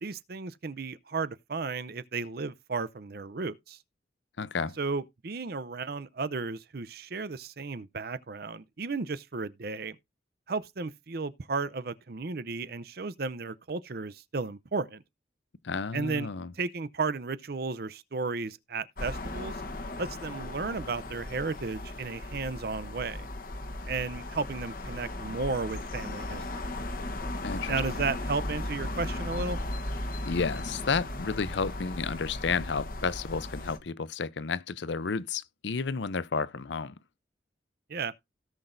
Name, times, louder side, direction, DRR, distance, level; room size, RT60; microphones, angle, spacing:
voice 1, 0.0-3.8 4.8-10.0 10.5-15.0 15.9-16.3 16.5-19.6 20.0-23.3 23.9-26.4 27.7-29.6 37.9-38.1, right 4 dB, 50° right, 0.6 m, -34 dB
voice 2, 4.4-4.7 15.6-16.5 27.4-27.8 30.2-36.9, left 5 dB, 70° left, 0.6 m, -31 dB
sound 1, 19.0-33.8, left 1 dB, 45° left, 1.1 m, -36 dB
17.0 x 6.0 x 2.6 m
head